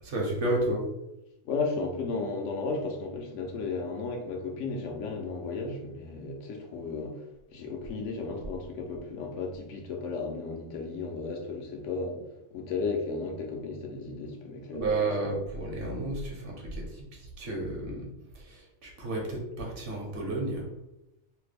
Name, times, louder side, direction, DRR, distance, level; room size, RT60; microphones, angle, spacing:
voice 1, 0.0-0.8 14.7-18.1 18.3-20.7, right 2 dB, 70° right, 1.2 m, -32 dB
voice 2, 1.4-7.2 7.5-12.2 12.5-14.9, left 4 dB, 85° left, 1.0 m, -34 dB
3.2 x 2.0 x 3.3 m
omnidirectional pair, 1.2 m